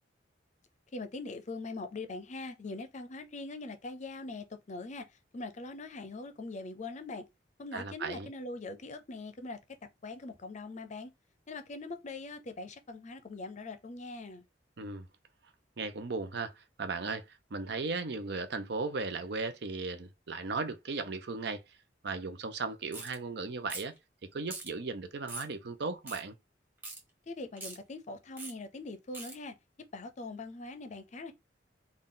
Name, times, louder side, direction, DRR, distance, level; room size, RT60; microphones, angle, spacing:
voice 1, 0.9-5.1 5.3-7.3 7.6-11.1 11.5-14.5 27.3-29.6 29.9-31.3, left 3 dB, 40° left, 0.5 m, -42 dB
voice 2, 7.7-8.3 14.8-15.1 15.8-21.6 22.0-23.9 24.3-26.3, right 4 dB, 65° right, 0.6 m, -36 dB
sound 1, 22.9-23.2 23.7-24.0 24.5-24.7 25.3-25.5 26.1-26.2 26.8-27.0 27.6-27.8 28.4-28.5 29.1-29.3, right 2 dB, 10° right, 1.3 m, -42 dB
3.9 x 2.3 x 3.8 m
head